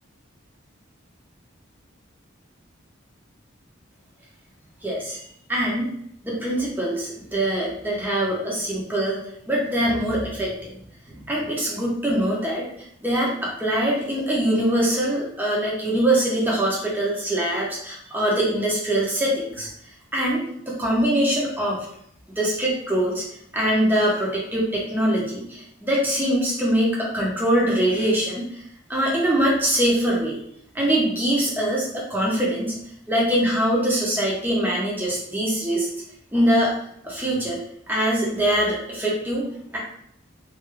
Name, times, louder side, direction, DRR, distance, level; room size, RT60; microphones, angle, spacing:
voice 1, 4.8-5.2 5.5-5.9 6.2-9.2 9.5-10.7 11.1-12.6 13.0-19.7 20.1-21.8 22.4-23.2 23.5-28.6 28.9-30.4 30.7-32.7 33.1-35.9 36.3-36.7 37.0-37.6 37.9-39.8, right 1 dB, 10° right, -4 dB, 0.9 m, -23 dB
3.3 x 2.8 x 3.3 m, 0.70 s
head